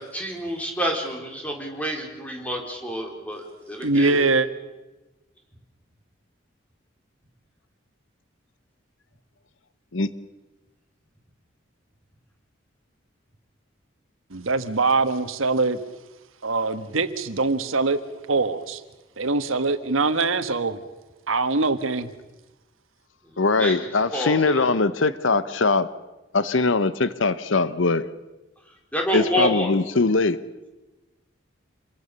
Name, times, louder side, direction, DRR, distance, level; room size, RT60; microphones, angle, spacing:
voice 1, 0.0-4.3 23.2-24.7 28.7-29.7, equal, 5° left, 0 dB, 4.3 m, -29 dB
voice 2, 3.8-4.5 14.3-15.8 16.4-18.0 18.3-18.8 19.2-20.8 21.3-22.1, right 3 dB, 90° right, 10 dB, 1.5 m, -23 dB
voice 3, 23.4-25.9 26.3-28.0 29.1-30.4, left 3 dB, 75° left, 15 dB, 0.9 m, -21 dB
27.0 x 22.0 x 6.8 m, 1.1 s
head